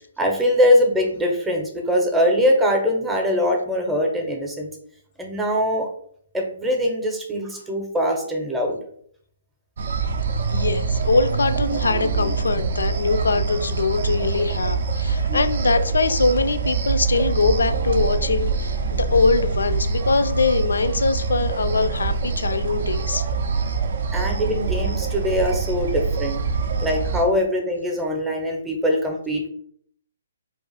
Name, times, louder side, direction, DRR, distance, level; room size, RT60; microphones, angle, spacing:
voice 1, 0.2-4.7 5.2-5.9 6.3-8.8 15.3-15.4 24.1-26.4 26.8-29.5, left 1 dB, 5° right, 1 dB, 0.6 m, -22 dB
sound 1, 9.8-27.2, right 5 dB, 60° right, 0.4 m, -24 dB
voice 2, 10.5-23.3, left 3 dB, 80° left, 9 dB, 0.3 m, -22 dB
2.4 x 2.4 x 3.9 m, 0.63 s
hypercardioid pair, 135°, 0 cm